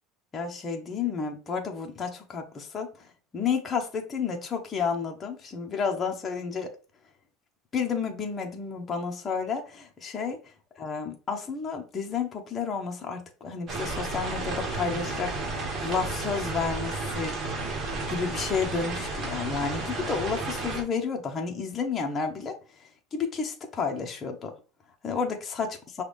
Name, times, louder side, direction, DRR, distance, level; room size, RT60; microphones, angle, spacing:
voice 1, 0.3-2.9 3.3-6.7 7.7-10.4 10.8-17.3 18.1-22.5 23.1-24.5 25.0-25.7, left 5 dB, 25° left, 2 dB, 0.9 m, -31 dB
sound 1, 13.7-20.8, right 3 dB, 35° right, 1.5 m, -32 dB
5.8 x 2.4 x 3.4 m, 0.36 s
cardioid pair, 145°, 0 cm